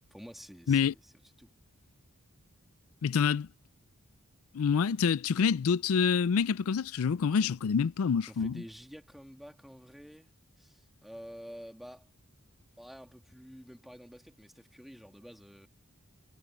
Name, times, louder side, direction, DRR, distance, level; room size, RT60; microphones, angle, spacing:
voice 1, 0.1-1.6 8.2-10.3 10.6-12.1 12.8-15.7, equal, ahead, 2.2 m, -49 dB
voice 2, 3.0-3.5 4.5-8.5, left 6 dB, 80° left, 0.4 m, -27 dB
head